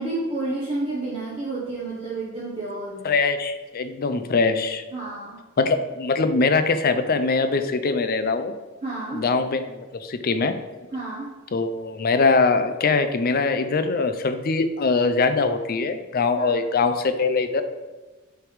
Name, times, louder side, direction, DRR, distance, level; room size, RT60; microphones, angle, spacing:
voice 1, 0.0-3.0 4.9-5.4 8.8-9.2 10.9-11.3 16.4-16.6, right 2 dB, 30° right, -7 dB, 1.2 m, -30 dB
voice 2, 3.0-4.8 5.6-8.5 9.1-10.6 11.5-17.6, left 4 dB, 45° left, 9 dB, 0.5 m, -22 dB
7.6 x 3.5 x 4.8 m, 1.2 s
head